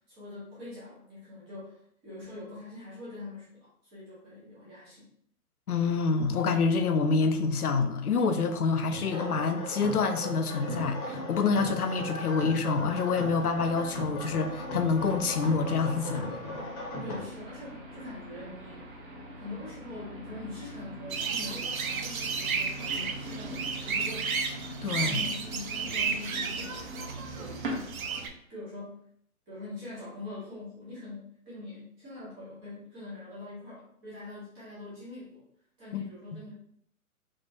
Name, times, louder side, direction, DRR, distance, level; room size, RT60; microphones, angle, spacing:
voice 1, 0.1-5.1 17.0-18.9 19.4-24.4 24.9-29.1 29.5-35.4 35.8-36.5, left 2 dB, 10° right, -9 dB, 0.6 m, -44 dB
voice 2, 5.7-16.3 24.8-25.2 35.9-36.0 36.3-36.4, left 4 dB, 80° left, 7 dB, 0.6 m, -27 dB
sound 1, 8.9-17.2, left 1 dB, 25° left, 0.9 m, -37 dB
sound 2, 10.7-28.3, right 1 dB, 35° right, 0.9 m, -43 dB
sound 3, 21.1-28.3, right 5 dB, 70° right, 0.6 m, -33 dB
3.6 x 3.2 x 2.6 m, 0.66 s
figure-of-eight pair, 135°, 44 cm